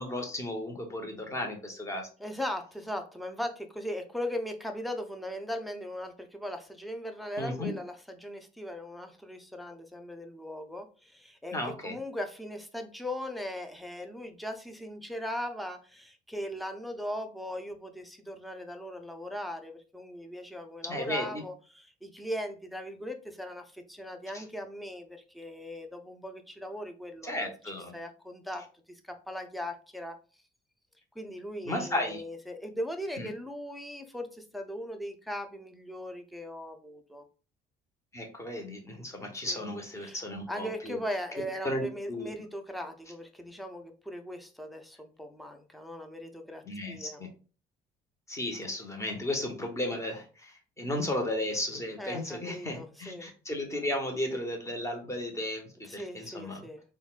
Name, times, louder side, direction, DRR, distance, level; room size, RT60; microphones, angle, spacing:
voice 1, 0.0-2.1 7.4-7.7 11.5-12.0 20.8-21.4 24.3-24.4 27.2-27.9 31.6-32.2 33.2-33.3 38.1-41.0 41.6-42.3 46.6-47.3 48.3-56.7, left 1 dB, 15° left, 2 dB, 1.0 m, -34 dB
voice 2, 2.2-11.6 11.8-27.5 27.9-30.2 31.2-37.2 39.5-39.6 40.0-40.2 40.5-47.2 52.0-53.3 55.9-56.8, equal, ahead, 5 dB, 0.5 m, -39 dB
3.9 x 2.2 x 2.4 m, 0.36 s
cardioid pair, 110°, 17 cm